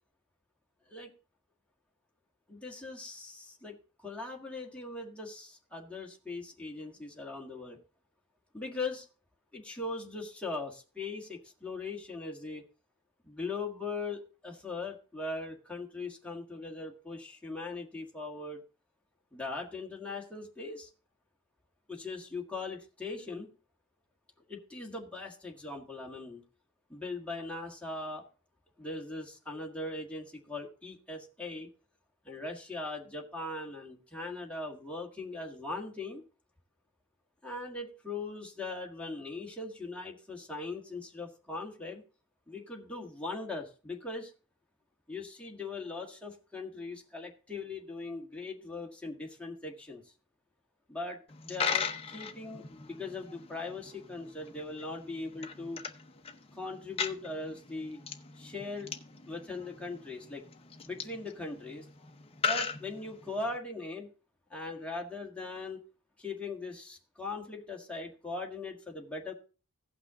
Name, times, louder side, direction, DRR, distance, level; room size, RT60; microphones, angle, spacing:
voice 1, 2.5-7.8 8.5-9.0 9.5-12.6 13.2-18.6 19.3-20.9 21.9-23.5 24.5-26.4 26.9-28.2 28.8-31.7 32.2-36.2 37.4-42.0 42.5-44.3 45.1-50.0 50.9-55.8 56.6-58.0 58.4-58.9 59.3-60.4 60.8-61.8 62.4-64.1 64.5-65.8 66.2-69.3, left 3 dB, 5° left, -1 dB, 1.8 m, -40 dB
Coin (dropping), 51.3-63.6, left 6 dB, 25° left, 0.8 m, -39 dB
16.5 x 5.9 x 3.7 m, 0.35 s
head